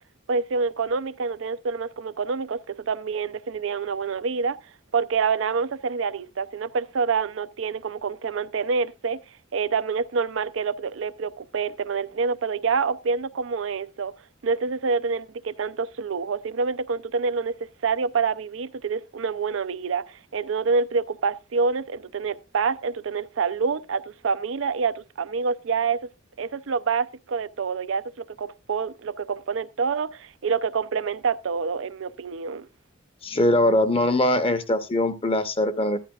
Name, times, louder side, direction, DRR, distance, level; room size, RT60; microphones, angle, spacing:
voice 1, 0.3-4.6 4.9-9.2 9.5-14.1 14.4-17.6 17.8-26.0 26.4-32.7, right 5 dB, 70° right, 0.5 m, -27 dB
voice 2, 33.2-36.0, left 1 dB, 30° left, 0.8 m, -22 dB
14.5 x 11.5 x 2.4 m
head